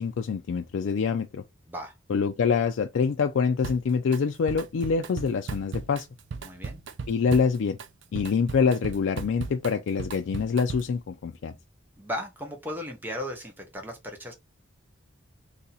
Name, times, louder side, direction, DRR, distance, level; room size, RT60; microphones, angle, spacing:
voice 1, 0.0-1.4 2.1-6.1 7.1-7.8 8.1-11.5, left 5 dB, 75° left, 0.4 m, -25 dB
Drum kit, 3.6-4.2 4.5-11.0, right 4 dB, 65° right, 0.4 m, -37 dB
voice 2, 6.4-6.8 12.0-14.3, equal, 10° right, 0.7 m, -36 dB
2.7 x 2.7 x 3.9 m
head